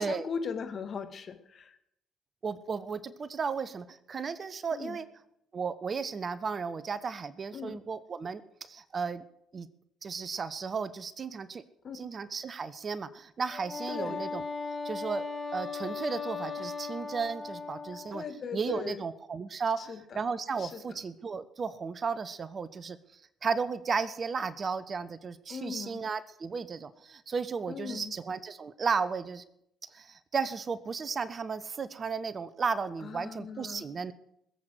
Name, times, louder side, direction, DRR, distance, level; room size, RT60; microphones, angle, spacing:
voice 1, 0.0-1.8 4.7-5.0 7.5-7.8 11.8-12.0 13.9-14.2 18.1-19.0 19.8-20.2 20.6-20.8 25.5-26.0 27.7-28.1 33.0-33.8, left 6 dB, 50° left, 7 dB, 2.3 m, -38 dB
voice 2, 2.4-5.1 5.5-9.2 9.5-9.7 10.0-11.6 11.9-14.4 14.8-15.2 15.5-18.2 18.5-23.0 23.4-29.4 29.9-34.1, right 5 dB, 40° right, 16 dB, 0.9 m, -34 dB
Wind instrument woodwind instrument, 13.5-18.2, left 4 dB, 25° left, 2.9 m, -37 dB
20.0 x 7.9 x 7.8 m, 0.78 s
hypercardioid pair, 50°, 0 cm